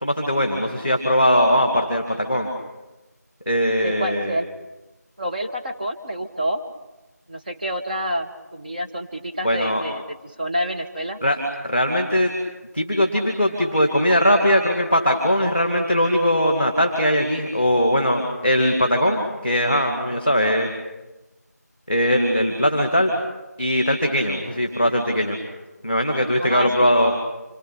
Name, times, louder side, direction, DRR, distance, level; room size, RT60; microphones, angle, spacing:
voice 1, 0.0-2.5 3.4-4.3 9.4-9.8 11.2-12.3 12.7-20.7 21.9-23.1 23.6-25.4 25.8-27.1, equal, 5° right, 2 dB, 1.5 m, -20 dB
voice 2, 3.8-4.5 5.2-6.6 7.3-11.2 26.4-26.9, equal, 30° right, 2 dB, 1.8 m, -28 dB
27.0 x 24.5 x 8.7 m, 1.0 s
figure-of-eight pair, 175°, 9 cm